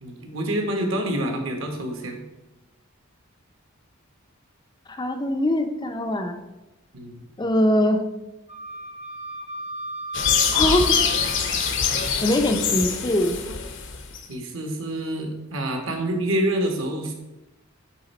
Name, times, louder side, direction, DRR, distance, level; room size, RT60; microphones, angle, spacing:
voice 1, 0.0-2.2 6.9-7.2 14.3-17.1, right 1 dB, 60° right, 3 dB, 1.2 m, -27 dB
voice 2, 4.9-6.4 7.4-8.0 10.5-10.9 12.2-13.4, left 1 dB, 20° left, 5 dB, 0.4 m, -22 dB
Wind instrument woodwind instrument, 8.5-12.1, right 1 dB, 30° right, 0.8 m, -36 dB
sound 1, 10.1-14.2, left 6 dB, 60° left, 0.7 m, -24 dB
8.8 x 3.5 x 4.2 m, 0.99 s
head